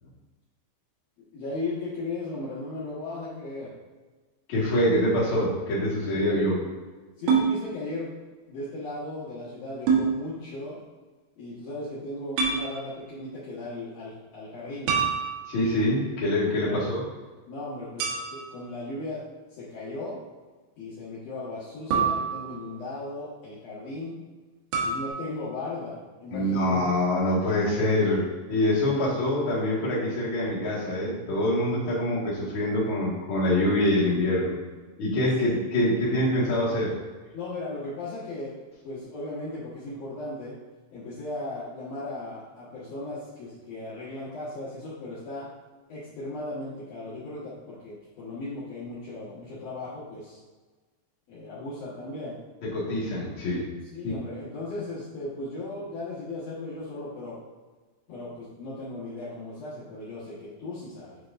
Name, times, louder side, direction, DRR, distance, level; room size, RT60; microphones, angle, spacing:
voice 1, 1.3-3.7 6.1-6.3 7.2-8.1 8.5-10.8 11.4-14.9 16.6-16.8 17.5-19.2 19.5-20.2 20.8-24.2 24.8-26.7 37.3-38.6 38.8-40.6 40.9-45.5 45.9-50.4 51.3-52.4 53.9-57.4 58.1-61.2, left 2 dB, 80° left, -10 dB, 1.4 m, -36 dB
voice 2, 4.5-6.6 15.5-17.0 26.3-34.5 35.0-36.9 52.6-53.7, left 1 dB, 55° left, -7 dB, 1.4 m, -25 dB
sound 1, 7.3-7.5 9.9-10.1 12.4-12.6 14.9-15.8 18.0-18.6 21.9-22.8 24.7-25.1, right 6 dB, 80° right, 3.4 m, -25 dB
8.5 x 4.8 x 2.5 m, 1.3 s
omnidirectional pair, 5.3 m